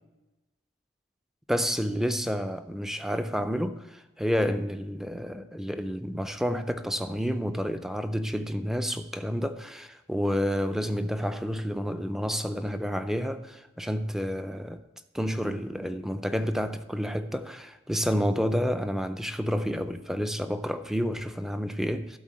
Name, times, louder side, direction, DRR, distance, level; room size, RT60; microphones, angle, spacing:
voice 1, 1.5-14.8 15.1-22.2, equal, ahead, 0.4 m, -29 dB
12.0 x 4.0 x 7.4 m
head